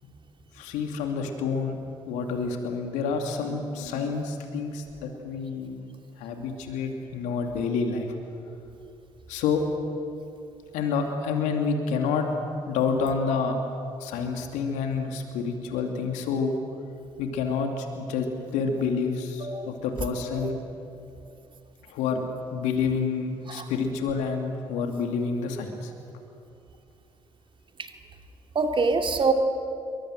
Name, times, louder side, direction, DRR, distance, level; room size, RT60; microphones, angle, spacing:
voice 1, 0.5-1.8 2.1-5.9 6.2-8.1 9.3-9.6 10.7-12.3 12.7-13.6 14.0-16.5 17.2-20.6 21.8-22.2 22.5-25.9, left 5 dB, 70° left, 4 dB, 2.6 m, -28 dB
voice 2, 28.5-29.3, right 4 dB, 40° right, 4 dB, 2.8 m, -25 dB
27.0 x 23.5 x 7.7 m, 2.6 s
hypercardioid pair, 45°, 13 cm